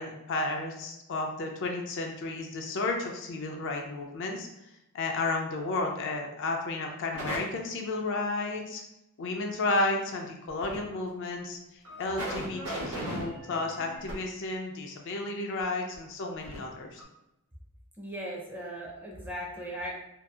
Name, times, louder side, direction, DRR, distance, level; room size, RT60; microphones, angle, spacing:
voice 1, 0.0-4.5 4.9-8.8 9.2-17.0, left 2 dB, 55° left, 2 dB, 0.4 m, -32 dB
sound 1, 7.1-7.4 10.5-10.8 11.3-11.4 11.9-14.1 15.9-16.0 16.4-16.6 17.0-17.1, right 1 dB, 80° right, 0.7 m, -37 dB
voice 2, 18.0-19.9, equal, 10° right, -2 dB, 0.4 m, -38 dB
2.7 x 2.3 x 2.3 m, 0.88 s
head